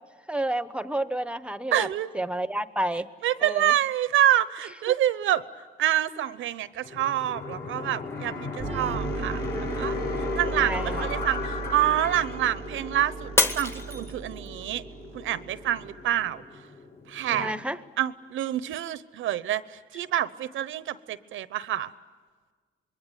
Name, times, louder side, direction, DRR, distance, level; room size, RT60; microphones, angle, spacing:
voice 1, 0.3-1.9 2.1-3.1 3.4-3.7 10.5-11.1 17.3-17.8, right 1 dB, 5° right, 13 dB, 1.0 m, -30 dB
voice 2, 1.7-2.1 3.2-5.4 5.8-9.4 9.7-9.9 10.3-14.8 15.1-16.4 17.1-17.5 18.0-21.9, right 12 dB, 80° right, 15 dB, 1.0 m, -27 dB
sound 1, 6.8-17.5, left 4 dB, 60° left, 7.7 m, -36 dB
sound 2, 8.6-16.2, right 5 dB, 30° right, 0.8 m, -37 dB
Shatter, 13.4-14.6 15.2-15.6 16.2-16.3, left 1 dB, 10° left, 1.4 m, -26 dB
27.0 x 22.0 x 9.4 m, 1.5 s
cardioid pair, 90°, 20 cm